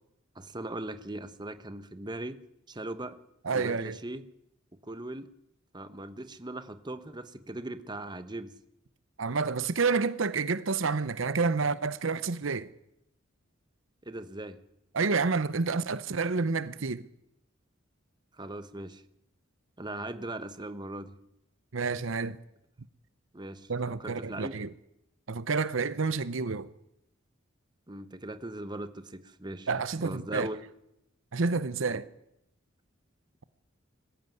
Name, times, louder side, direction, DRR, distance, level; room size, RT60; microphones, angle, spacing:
voice 1, 0.3-2.4 2.7-3.2 3.5-4.2 4.8-5.3 5.7-8.5 14.0-14.6 18.3-19.0 19.8-21.1 23.3-23.7 24.0-24.6 27.9-29.7 30.0-30.6 31.9-32.0, right 1 dB, 20° right, 1.1 m, -39 dB
voice 2, 3.4-4.0 9.2-12.7 14.9-17.1 21.7-22.4 23.7-24.7 25.3-26.7 29.7-30.5 31.3-32.0, right 4 dB, 70° right, 0.8 m, -29 dB
21.0 x 15.0 x 9.4 m
head